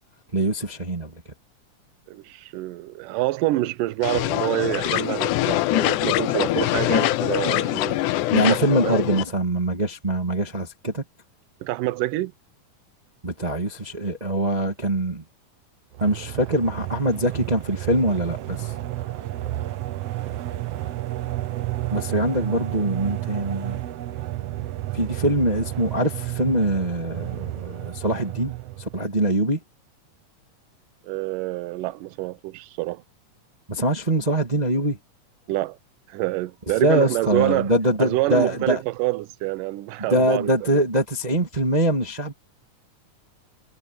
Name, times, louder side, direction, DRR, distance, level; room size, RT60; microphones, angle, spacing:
voice 1, 0.3-1.1 8.3-11.0 13.2-15.2 16.0-18.7 21.9-23.8 24.9-29.6 33.7-35.0 36.8-38.8 40.1-42.3, right 1 dB, 15° right, 1.5 m, -23 dB
voice 2, 2.1-8.0 8.4-9.0 11.6-12.3 31.0-33.0 35.5-35.8 36.1-37.7 38.0-40.8, right 17 dB, 85° right, 2.3 m, -27 dB
sound 1, 4.0-9.2, left 16 dB, 75° left, 2.0 m, -23 dB
sound 2, 15.9-29.0, right 15 dB, 65° right, 1.6 m, -31 dB
omnidirectional pair, 3.8 m